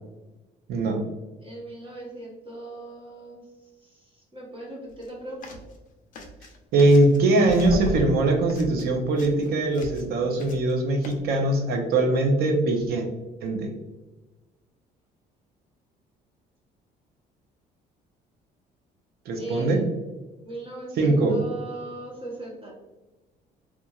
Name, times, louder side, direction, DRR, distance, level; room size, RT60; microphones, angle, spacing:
voice 1, 0.7-1.0 6.7-13.1 13.4-13.7 19.3-19.8 21.0-21.4, right 2 dB, 70° right, 3 dB, 0.7 m, -21 dB
voice 2, 1.4-3.4 3.8-5.6 19.4-19.8 20.4-22.7, right 2 dB, 30° right, -5 dB, 0.9 m, -39 dB
sound 1, 4.9-5.1 5.4-5.8 6.1-7.2 7.5-10.1 10.4-10.7 11.0-11.1, left 1 dB, 50° left, 0.5 m, -35 dB
2.9 x 2.4 x 2.3 m, 1.1 s
cardioid pair, 110°, 17 cm